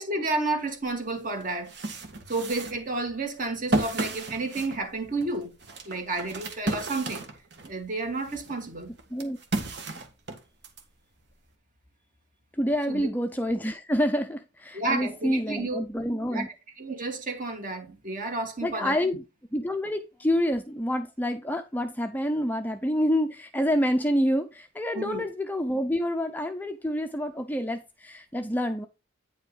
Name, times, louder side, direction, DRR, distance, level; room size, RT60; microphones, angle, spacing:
voice 1, 0.0-1.7 2.3-5.5 5.9-7.3 7.6-8.9 12.9-13.1 14.7-15.8 16.3-16.5 16.8-19.0 24.9-25.2, right 2 dB, 45° right, 2.2 m, -31 dB
sound 1, 0.9-1.0 1.4-7.8 8.2-10.8, right 2 dB, 60° right, 1.6 m, -33 dB
voice 2, 12.6-16.5 18.6-19.2 19.5-28.9, equal, 10° left, 0.6 m, -27 dB
9.4 x 5.4 x 3.8 m
head